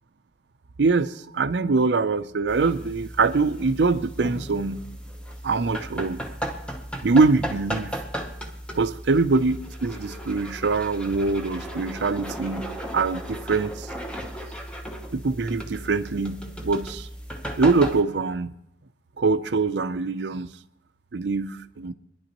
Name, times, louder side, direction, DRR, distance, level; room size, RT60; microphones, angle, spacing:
voice 1, 0.8-4.9 5.4-6.2 7.0-7.9 8.8-13.9 15.1-17.1 17.6-18.5 19.2-20.5 21.1-21.9, right 4 dB, 80° right, 0.6 m, -23 dB
sound 1, 2.5-18.0, equal, 5° left, 1.0 m, -36 dB
27.0 x 11.0 x 3.0 m
head